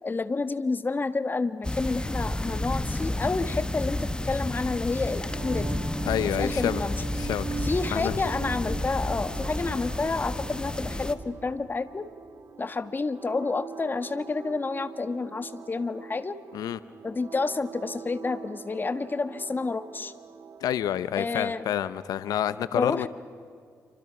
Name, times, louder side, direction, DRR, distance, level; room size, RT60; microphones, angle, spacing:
voice 1, 0.0-5.7 6.2-7.0 7.6-12.1 12.6-16.4 17.0-20.1 21.2-21.7 22.7-23.1, left 3 dB, 30° left, 12 dB, 1.5 m, -29 dB
sound 1, 1.6-11.1, left 1 dB, 15° left, 1.4 m, -31 dB
sound 2, 4.9-20.9, right 6 dB, 55° right, 1.6 m, -42 dB
voice 2, 6.1-6.8 7.2-7.5 7.9-8.1 16.5-16.8 20.6-23.1, left 11 dB, 90° left, 15 dB, 0.6 m, -28 dB
28.5 x 25.0 x 6.0 m, 2.3 s
cardioid pair, 80°, 6 cm